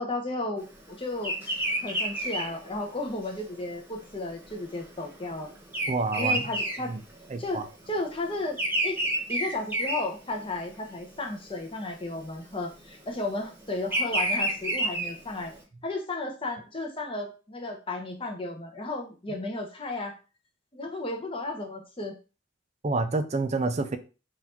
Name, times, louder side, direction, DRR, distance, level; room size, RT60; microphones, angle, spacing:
voice 1, 0.0-1.3 1.8-5.5 6.2-6.9 7.4-7.6 7.9-8.6 8.8-9.0 9.3-15.5 15.8-20.2 20.7-22.1, left 2 dB, 25° left, 2 dB, 0.9 m, -33 dB
Bird vocalization bird call bird song, 1.2-7.6 7.9-10.8 11.2-11.6 12.6-15.5, right 1 dB, 10° right, 1.2 m, -30 dB
voice 2, 5.9-6.5 6.8-7.0 7.3-7.6 22.8-24.0, right 3 dB, 35° right, 9 dB, 0.4 m, -28 dB
4.1 x 2.6 x 4.3 m, 0.33 s
head